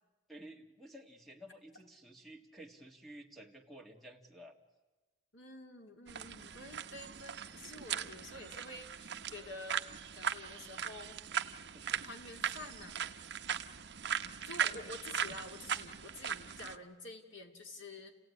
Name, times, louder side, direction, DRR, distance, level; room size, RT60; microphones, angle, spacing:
voice 1, 0.3-4.6 10.6-10.8 11.7-12.0, right 1 dB, ahead, 3 dB, 2.0 m, -53 dB
voice 2, 5.3-9.8 10.1-11.2 12.0-13.1 14.4-18.1, left 2 dB, 65° left, 4 dB, 2.7 m, -49 dB
sound 1, 6.1-16.8, right 8 dB, 55° right, 0.9 m, -39 dB
29.5 x 16.5 x 9.7 m, 1.2 s
head